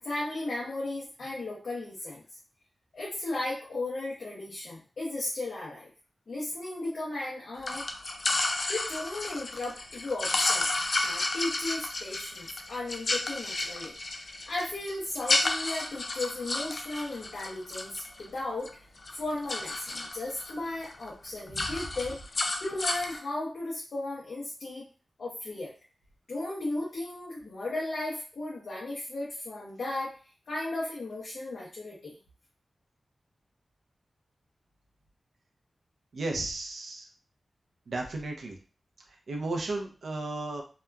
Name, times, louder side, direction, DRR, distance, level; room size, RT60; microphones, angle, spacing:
voice 1, 0.0-2.2 2.9-5.9 6.3-7.9 8.7-10.7 11.0-13.9 14.2-17.9 18.2-18.8 19.1-22.2 22.6-24.8 25.2-25.7 26.3-30.2 30.5-32.2, left 2 dB, 75° left, -6 dB, 0.8 m, -35 dB
sound 1, 7.6-18.7 19.0-20.5 20.9-21.1 21.4-23.2, left 2 dB, 55° left, 0.4 m, -31 dB
voice 2, 36.1-37.1 37.9-38.6 39.3-40.6, right 2 dB, 80° right, 2 dB, 0.5 m, -34 dB
2.8 x 2.3 x 2.3 m, 0.37 s
wide cardioid pair, 115°, 0 cm